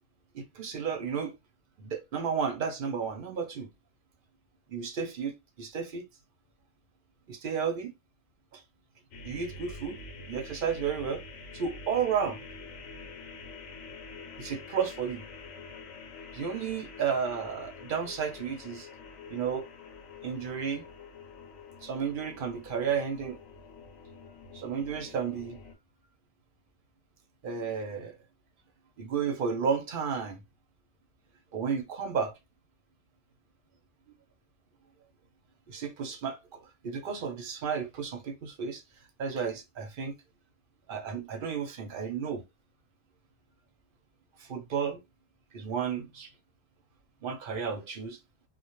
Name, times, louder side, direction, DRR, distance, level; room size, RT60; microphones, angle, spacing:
voice 1, 0.3-1.3 1.8-3.7 4.7-6.0 7.3-7.9 8.5-8.6 9.2-11.2 11.5-12.4 14.4-15.3 16.3-18.9 19.3-19.7 20.2-20.9 21.8-23.4 24.5-25.6 27.4-28.2 29.0-30.4 31.5-32.3 35.7-38.8 39.2-40.1 40.9-42.4 44.4-45.0 45.5-46.3 47.2-48.2, right 6 dB, 55° right, 0.6 m, -32 dB
sound 1, 9.1-25.7, left 4 dB, 75° left, 0.9 m, -47 dB
2.2 x 2.1 x 2.9 m
omnidirectional pair, 1.4 m